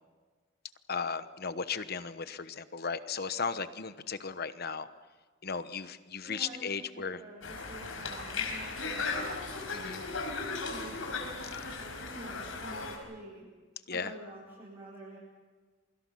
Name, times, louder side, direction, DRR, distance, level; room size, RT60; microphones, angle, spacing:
voice 1, 0.9-4.9 5.4-7.2 9.7-10.0 13.9-14.1, left 5 dB, 50° left, 12 dB, 1.1 m, -36 dB
voice 2, 6.2-6.7 6.9-9.5 10.7-11.3 12.1-13.5 13.9-15.2, right 1 dB, 30° right, -7 dB, 7.9 m, -48 dB
Conversation, 7.4-13.0, left 4 dB, 85° left, 5.1 m, -36 dB
28.5 x 24.0 x 5.8 m, 1.4 s
head